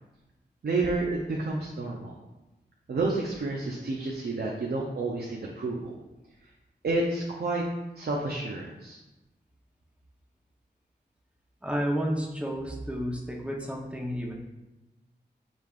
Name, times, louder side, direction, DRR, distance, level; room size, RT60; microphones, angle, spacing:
voice 1, 0.6-2.2 2.9-5.9 6.8-7.6 8.0-9.0, right 2 dB, 60° right, -2 dB, 0.6 m, -30 dB
voice 2, 11.6-14.3, equal, 5° right, -1 dB, 0.8 m, -31 dB
5.5 x 3.3 x 2.4 m, 1.0 s
cardioid pair, 60°, 18 cm